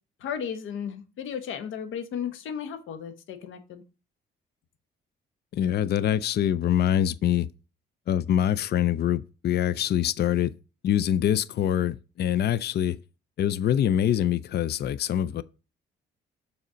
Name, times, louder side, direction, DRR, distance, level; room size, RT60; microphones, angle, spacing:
voice 1, 0.2-3.8, left 8 dB, 80° left, 1.2 m, -34 dB
voice 2, 5.5-7.5 8.1-10.5 10.8-13.0 13.4-15.4, left 10 dB, 55° left, 0.5 m, -24 dB
6.7 x 4.1 x 6.2 m
cardioid pair, 90°, 20 cm